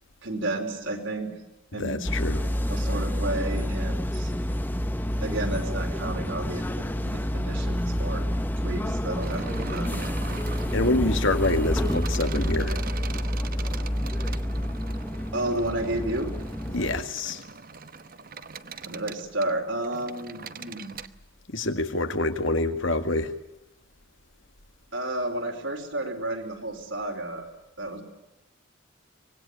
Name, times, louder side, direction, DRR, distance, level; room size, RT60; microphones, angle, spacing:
voice 1, 0.2-1.3 1.7-2.0 2.7-4.3 5.2-8.3 8.6-10.0 15.3-16.3 18.8-21.0 24.9-27.5 27.8-28.0, right 1 dB, 65° right, 3 dB, 4.8 m, -31 dB
voice 2, 1.8-2.4 10.7-12.8 16.7-17.4 21.5-23.3, left 2 dB, 70° left, 7 dB, 1.9 m, -26 dB
sound 1, 2.1-17.0, equal, 10° left, 1.1 m, -28 dB
sound 2, 9.2-21.1, right 4 dB, 45° right, 1.0 m, -41 dB
25.0 x 20.0 x 8.5 m, 0.94 s
head